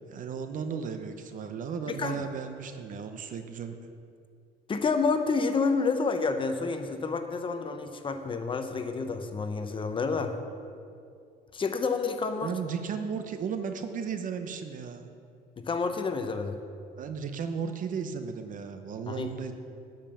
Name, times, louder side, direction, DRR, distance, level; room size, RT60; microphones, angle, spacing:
voice 1, 0.1-3.8 12.4-15.1 17.0-19.5, right 6 dB, 50° right, 7 dB, 0.8 m, -35 dB
voice 2, 1.9-2.2 4.7-10.3 11.5-12.5 15.6-16.6 19.1-19.3, left 4 dB, 30° left, 7 dB, 0.8 m, -29 dB
10.5 x 5.5 x 7.0 m, 2.4 s
cardioid pair, 110°, 17 cm